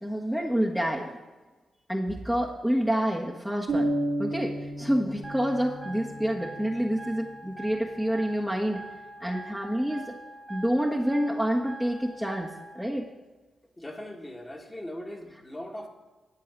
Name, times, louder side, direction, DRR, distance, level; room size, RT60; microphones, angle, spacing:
voice 1, 0.0-1.1 1.9-3.9 4.2-8.8 9.2-10.2 10.5-13.1, equal, ahead, -2 dB, 1.5 m, -28 dB
sound 1, 3.7-7.4, right 1 dB, 65° right, 2.1 m, -32 dB
sound 2, 5.2-12.8, right 2 dB, 20° right, 1.6 m, -44 dB
voice 2, 13.8-15.9, left 1 dB, 20° left, 1 dB, 2.2 m, -39 dB
12.5 x 4.6 x 8.4 m, 1.2 s
hypercardioid pair, 40°, 0 cm